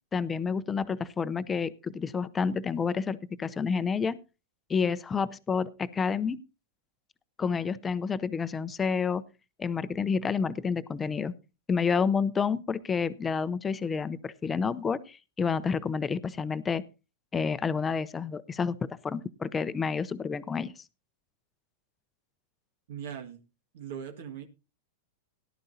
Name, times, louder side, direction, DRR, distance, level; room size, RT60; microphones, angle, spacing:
voice 1, 0.1-4.2 4.7-6.4 7.4-9.2 9.6-11.3 11.7-16.8 17.3-20.8, left 5 dB, 15° left, 15 dB, 0.6 m, -29 dB
voice 2, 22.9-23.4 23.7-24.5, right 8 dB, 70° right, 4 dB, 1.8 m, -39 dB
17.5 x 11.5 x 2.8 m, 0.29 s
supercardioid pair, 145°, 0 cm